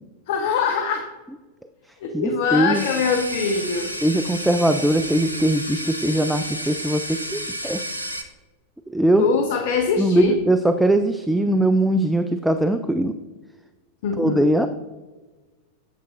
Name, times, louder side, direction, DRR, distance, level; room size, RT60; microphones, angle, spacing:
voice 1, 0.3-1.1 2.0-3.9 9.2-10.4 14.0-14.5, left 5 dB, 50° left, 5 dB, 0.6 m, -23 dB
voice 2, 2.1-2.9 4.0-7.8 8.9-9.2 10.0-13.2 14.2-14.7, right 1 dB, 5° right, 8 dB, 0.3 m, -20 dB
sound 1, 2.7-8.2, equal, 90° left, 0.6 m, -31 dB
8.1 x 7.6 x 2.5 m, 1.2 s
figure-of-eight pair, 90°, 0 cm